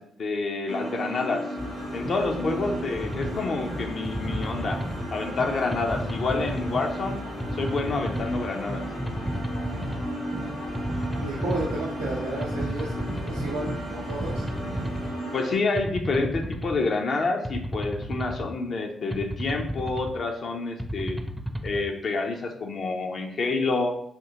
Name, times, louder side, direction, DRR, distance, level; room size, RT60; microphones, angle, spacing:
voice 1, 0.0-1.4 1.9-4.8 5.1-7.2 7.5-8.8 15.3-21.2 21.6-23.9, left 3 dB, 60° left, 3 dB, 0.5 m, -28 dB
sound 1, 0.7-15.5, equal, 80° left, 1.3 m, -35 dB
sound 2, 1.6-15.1, right 1 dB, 50° right, 0.6 m, -37 dB
sound 3, 2.9-3.4 4.0-5.1 5.7-6.7 7.4-8.4 9.1-10.1 10.7-11.8 12.4-13.4 14.1-15.1 15.8-16.8 17.4-18.5 19.1-20.1 20.8-21.8, equal, 10° right, 0.5 m, -33 dB
voice 2, 11.2-12.9 13.2-14.5, right 2 dB, 90° right, -7 dB, 0.5 m, -32 dB
3.6 x 2.7 x 2.8 m, 0.70 s
hypercardioid pair, 40°, 0 cm